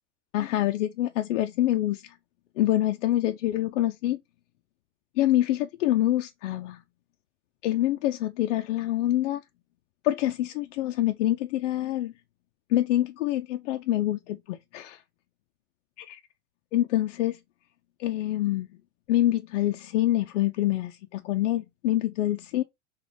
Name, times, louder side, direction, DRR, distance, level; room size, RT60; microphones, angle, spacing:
voice 1, 0.3-2.1 2.6-4.2 5.2-6.8 7.6-9.4 10.0-12.1 12.7-15.0 16.0-16.2 16.7-17.4 18.0-18.7 19.1-22.6, left 14 dB, 85° left, 0.5 m, -26 dB
6.1 x 2.4 x 3.3 m
supercardioid pair, 175°, 36 cm